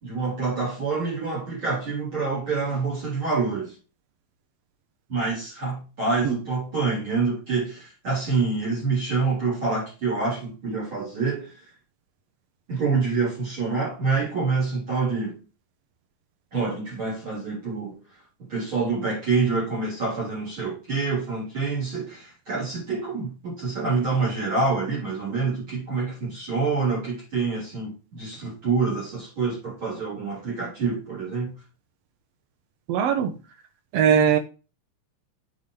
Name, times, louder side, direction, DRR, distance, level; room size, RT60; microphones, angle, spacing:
voice 1, 0.0-3.7 5.1-11.5 12.7-15.4 16.5-18.0 18.5-31.5, right 4 dB, 40° right, 4.0 m, -26 dB
voice 2, 32.9-33.3 33.9-34.4, right 8 dB, 85° right, 1.4 m, -20 dB
7.7 x 5.5 x 3.1 m
omnidirectional pair, 3.8 m